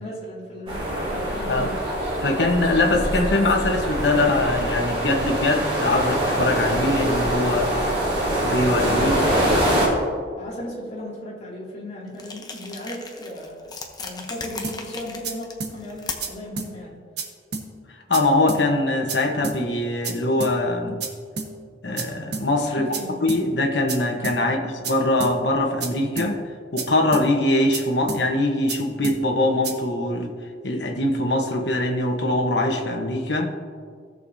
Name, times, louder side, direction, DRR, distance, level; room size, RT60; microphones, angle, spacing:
voice 1, 0.0-1.8 9.0-9.9 10.4-13.7 14.0-17.0 22.8-23.2 24.4-24.6, left 1 dB, 40° left, -5 dB, 2.5 m, -35 dB
sound 1, 0.7-9.9, right 1 dB, 30° right, 2.5 m, -24 dB
voice 2, 2.2-7.7 8.4-9.1 18.1-21.0 21.8-22.9 23.2-26.4 26.7-30.3 30.6-33.5, left 2 dB, 70° left, 2 dB, 1.2 m, -22 dB
sound 2, 12.1-16.5, left 4 dB, 20° left, 0.8 m, -37 dB
sound 3, 14.6-14.8 15.2-15.3 15.6-15.7 16.2-16.3 16.6-16.7 17.2-17.3 17.5-17.7 18.1-18.2 18.5-18.6 19.1-19.2 19.4-19.6 20.0-20.1 20.4-20.5 21.0-21.1 21.4-21.5 22.0-22.1 22.3-22.5 22.9-23.0 23.3-23.4 23.9-24.0 24.2-24.4 24.8-24.9 25.2-25.3 25.8-25.9 26.2-26.3 26.8-26.9 27.1-27.3 27.7-27.8 28.1-28.2 28.7-28.8 29.0-29.2 29.6-29.7, right 4 dB, 65° right, 1.2 m, -30 dB
17.5 x 6.6 x 2.7 m, 2.1 s
head